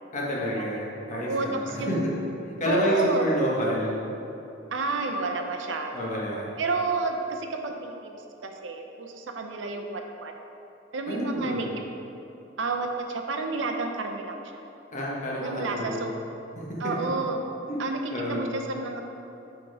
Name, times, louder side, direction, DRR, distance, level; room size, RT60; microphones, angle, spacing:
voice 1, 0.1-2.1 2.6-4.0 5.9-6.5 11.1-11.7 14.9-16.1 16.6-16.9 17.7-17.8 18.1-18.5, equal, 40° left, -4 dB, 1.3 m, -29 dB
voice 2, 1.1-2.1 2.6-3.3 4.7-6.0 6.6-8.1 8.4-10.3 10.9-11.7 12.6-14.4 15.4-16.2 16.8-17.4 17.8-18.0 18.3-19.0, right 3 dB, 70° right, 3 dB, 0.6 m, -30 dB
6.4 x 4.6 x 4.8 m, 2.8 s
head